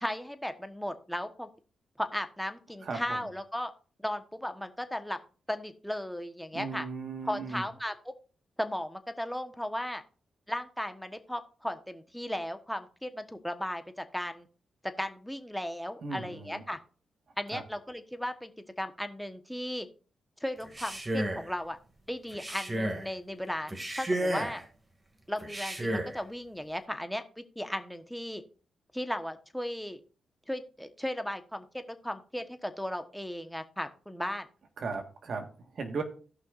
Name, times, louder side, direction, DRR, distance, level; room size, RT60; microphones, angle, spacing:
voice 1, 0.0-1.5 2.0-3.7 4.0-5.2 5.5-6.9 7.2-8.1 8.6-10.0 10.5-14.5 14.8-16.8 17.4-18.5 18.8-19.9 20.4-21.8 22.1-23.7 24.0-24.6 25.3-28.4 28.9-30.0 30.5-34.5, left 1 dB, 5° left, 8 dB, 1.2 m, -36 dB
voice 2, 2.8-3.2 6.5-7.6 16.0-16.6 17.5-17.6 34.8-36.0, right 4 dB, 65° right, 5 dB, 1.6 m, -37 dB
Male speech man speaking, 20.6-21.5 22.3-23.1 23.7-24.6 25.4-26.2, right 1 dB, 25° right, 2.3 m, -32 dB
17.0 x 5.7 x 2.6 m, 0.38 s
cardioid pair, 65°, 0 cm